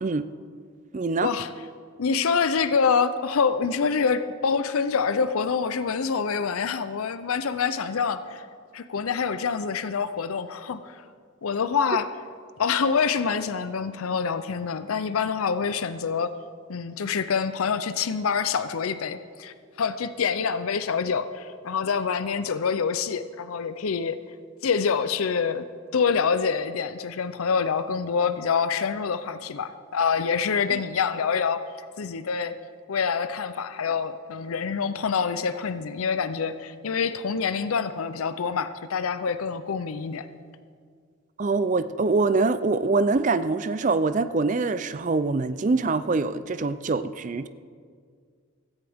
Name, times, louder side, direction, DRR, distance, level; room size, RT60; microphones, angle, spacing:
voice 1, 0.9-1.3 30.7-30.8 41.4-47.5, right 3 dB, 35° right, 13 dB, 0.4 m, -24 dB
voice 2, 2.0-8.4 8.7-11.0 11.4-12.1 12.6-16.3 16.7-24.2 24.6-25.7 25.9-31.6 32.0-32.5 32.9-40.3, left 6 dB, 85° left, 12 dB, 0.5 m, -26 dB
16.0 x 14.0 x 3.6 m, 2.1 s
head